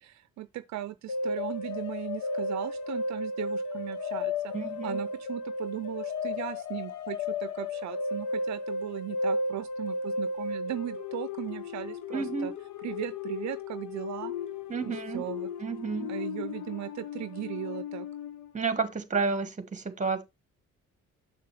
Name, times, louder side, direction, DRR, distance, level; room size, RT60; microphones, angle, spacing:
voice 1, 0.0-4.5 4.8-12.5 12.8-14.3 14.9-15.5 16.1-18.1, right 14 dB, 65° right, 0.5 m, -38 dB
sound 1, 1.1-18.5, left 3 dB, 80° left, 0.9 m, -34 dB
voice 2, 4.5-5.0 12.1-12.5 14.7-15.3 15.6-16.1 18.5-20.2, right 4 dB, 25° right, 1.4 m, -31 dB
6.7 x 6.3 x 3.2 m
cardioid pair, 90°, 30 cm